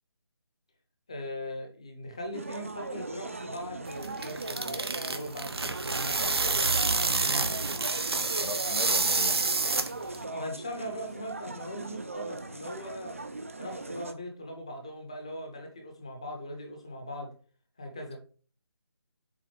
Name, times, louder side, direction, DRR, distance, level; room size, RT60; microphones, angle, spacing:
voice 1, 1.1-6.8 10.2-13.1 13.6-17.3 17.8-18.2, equal, 15° left, 3 dB, 0.7 m, -40 dB
sound 1, 2.3-14.1, right 2 dB, 30° right, 0.5 m, -39 dB
sound 2, 3.9-10.2, right 3 dB, 70° right, 1.0 m, -28 dB
voice 2, 8.1-9.4, left 2 dB, 90° left, 6 dB, 2.2 m, -38 dB
7.6 x 3.7 x 5.0 m, 0.40 s
figure-of-eight pair, 180°, 14 cm